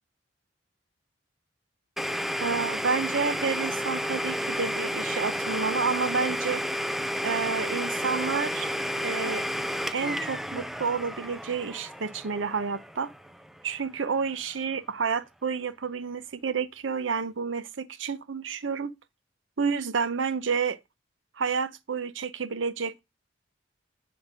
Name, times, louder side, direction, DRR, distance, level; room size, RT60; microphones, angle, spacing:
Domestic sounds home sounds, 2.0-13.6, equal, ahead, 0.4 m, -31 dB
voice 1, 2.4-6.6 7.2-8.7 9.0-9.4 9.9-13.1 13.6-18.9 19.6-20.8 21.4-23.0, right 5 dB, 85° right, 0.7 m, -30 dB
9.9 x 3.5 x 6.1 m
head